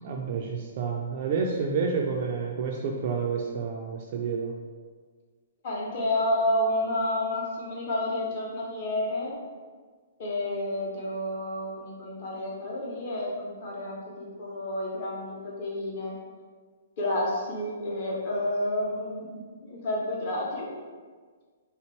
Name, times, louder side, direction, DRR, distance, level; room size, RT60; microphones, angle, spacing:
voice 1, 0.0-4.5, right 5 dB, 30° right, 0 dB, 0.3 m, -29 dB
voice 2, 5.6-9.3 10.2-16.1 17.0-20.7, left 1 dB, 30° left, -3 dB, 0.9 m, -30 dB
3.4 x 2.9 x 4.4 m, 1.5 s
hypercardioid pair, 180°, 0 cm